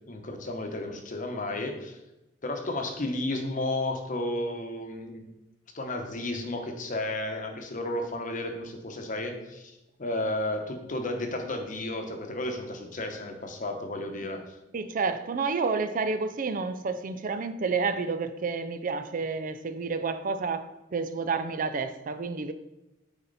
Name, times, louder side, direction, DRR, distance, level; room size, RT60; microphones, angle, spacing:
voice 1, 0.1-2.0 2.4-5.3 5.7-9.7 10.0-14.5, left 1 dB, 40° left, 4 dB, 0.9 m, -33 dB
voice 2, 14.7-22.5, right 4 dB, 45° right, 11 dB, 0.4 m, -30 dB
8.7 x 4.2 x 4.0 m, 0.94 s
head